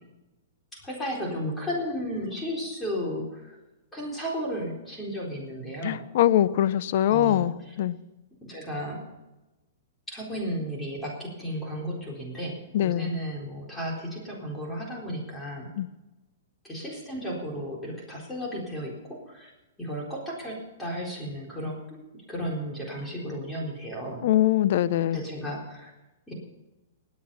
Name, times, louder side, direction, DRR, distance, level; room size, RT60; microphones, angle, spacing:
voice 1, 0.7-3.6 3.9-6.0 7.1-7.7 8.4-9.0 10.1-15.7 16.6-19.5 19.8-24.3 25.1-25.9 26.3-26.4, equal, 10° left, -3 dB, 4.0 m, -34 dB
voice 2, 5.8-8.0 12.7-13.1 15.8-15.9 24.2-25.2, left 12 dB, 55° left, 16 dB, 0.7 m, -23 dB
19.5 x 8.6 x 5.5 m, 1.0 s
hypercardioid pair, 140°, 0 cm